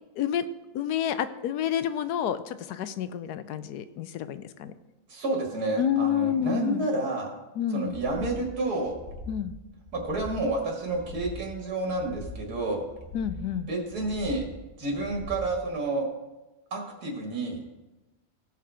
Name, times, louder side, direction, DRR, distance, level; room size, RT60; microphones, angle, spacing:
voice 1, 0.2-0.5 0.7-4.7 5.8-6.9 7.6-8.0 9.3-9.6 13.1-13.7, left 9 dB, 90° left, 13 dB, 1.2 m, -29 dB
voice 2, 5.1-7.3 7.7-9.0 9.9-12.9 13.7-14.4 14.8-16.1 16.7-17.6, right 2 dB, 80° right, 0 dB, 2.5 m, -29 dB
sound 1, 7.9-8.4 8.8-9.4 9.8-10.4 10.8-11.4 11.8-12.4 12.8-13.4 13.8-14.4 14.9-15.5, left 1 dB, 55° left, 2.4 m, -41 dB
16.0 x 5.9 x 5.0 m, 1.0 s
omnidirectional pair, 1.6 m